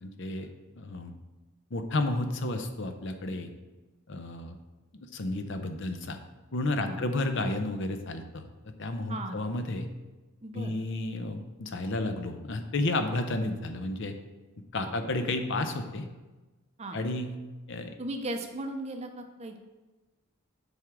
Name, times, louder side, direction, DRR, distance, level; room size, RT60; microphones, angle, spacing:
voice 1, 0.0-0.5 0.8-1.1 1.7-3.5 4.1-4.6 4.9-6.2 6.5-8.4 8.8-9.9 10.5-14.1 14.7-16.1 16.9-17.3 17.7-18.0, left 2 dB, 55° left, 7 dB, 0.6 m, -31 dB
voice 2, 10.4-10.7 14.8-14.9 16.8-17.0 18.0-19.6, right 1 dB, 30° right, 5 dB, 0.6 m, -37 dB
7.8 x 3.6 x 6.0 m, 1.2 s
head